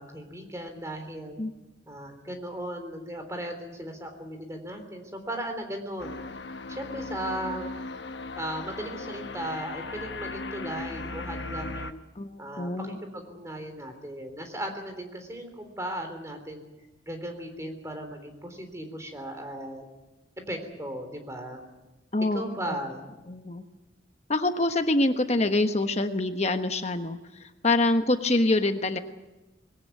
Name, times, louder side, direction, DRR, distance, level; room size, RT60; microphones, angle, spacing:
voice 1, 0.0-1.4 1.9-6.2 6.7-7.7 8.4-12.0 12.4-16.6 17.1-19.8 20.5-21.6 22.3-23.1, right 1 dB, 15° right, 5 dB, 3.6 m, -37 dB
sound 1, 6.0-11.9, left 3 dB, 70° left, 1.1 m, -37 dB
voice 2, 12.1-13.0 22.1-22.8 23.3-23.6 24.3-29.0, left 2 dB, 35° left, 7 dB, 1.2 m, -26 dB
21.5 x 18.0 x 9.3 m, 1.0 s
head